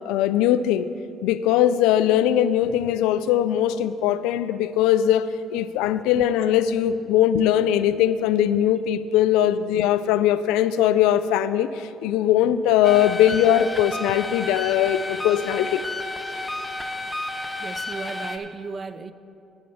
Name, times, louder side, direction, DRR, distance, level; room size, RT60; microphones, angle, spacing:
voice 1, 0.1-0.9 1.2-15.8, left 11 dB, 90° left, 14 dB, 0.3 m, -20 dB
sound 1, 12.8-18.4, left 2 dB, 10° left, 0.7 m, -31 dB
voice 2, 17.6-19.1, right 4 dB, 35° right, 13 dB, 0.4 m, -35 dB
9.6 x 7.5 x 5.5 m, 2.6 s
supercardioid pair, 80°, 0 cm